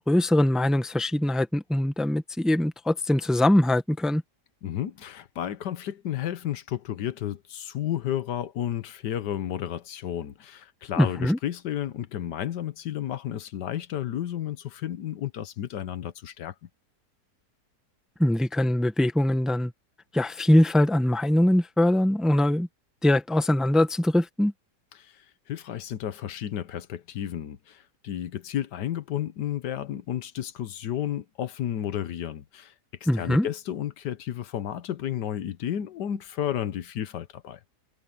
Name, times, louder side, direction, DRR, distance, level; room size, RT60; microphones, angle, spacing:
voice 1, 0.1-4.2 11.0-11.4 18.2-19.7 20.1-22.7 23.0-24.5 33.1-33.5, left 1 dB, ahead, 0.8 m, -22 dB
voice 2, 4.6-16.5 24.9-32.7 33.1-37.6, left 11 dB, 80° left, 1.6 m, -32 dB
omnidirectional pair, 1.8 m